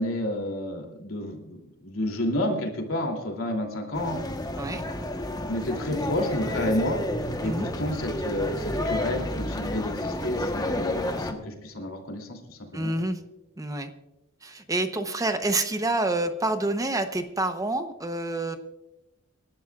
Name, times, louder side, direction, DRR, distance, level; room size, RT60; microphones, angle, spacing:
voice 1, 0.0-4.2 5.5-7.0 7.4-12.9, left 1 dB, 80° left, 1 dB, 2.9 m, -30 dB
sound 1, 3.9-11.3, left 1 dB, 20° left, 1.1 m, -30 dB
voice 2, 12.7-13.2 13.6-13.9 14.4-18.6, right 2 dB, 15° right, 8 dB, 0.8 m, -27 dB
27.5 x 12.0 x 2.4 m, 0.94 s
head